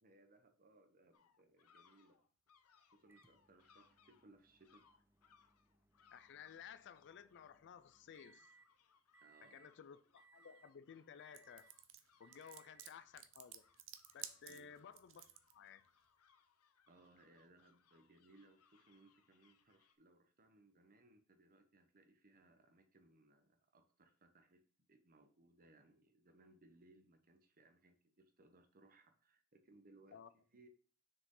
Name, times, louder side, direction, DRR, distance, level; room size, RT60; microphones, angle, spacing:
voice 1, 0.0-2.2 2.8-4.8 9.2-9.7 14.5-14.7 16.9-24.6 24.9-30.7, right 2 dB, 40° right, 1.0 m, -67 dB
sound 1, 1.1-20.0, left 6 dB, 85° left, 0.8 m, -73 dB
Microwave oven, 3.1-8.7 9.1-9.8 10.2-10.8 11.2-11.8 12.2-13.0 14.0-14.1 16.1-16.2, right 4 dB, 10° right, 0.5 m, -70 dB
voice 2, 6.1-8.5 9.5-11.7 12.2-13.6 14.1-15.3 15.5-15.9 30.1-30.3, left 7 dB, 55° left, 0.4 m, -56 dB
sound 2, 11.3-15.5, right 11 dB, 60° right, 0.6 m, -53 dB
6.4 x 4.9 x 3.8 m
head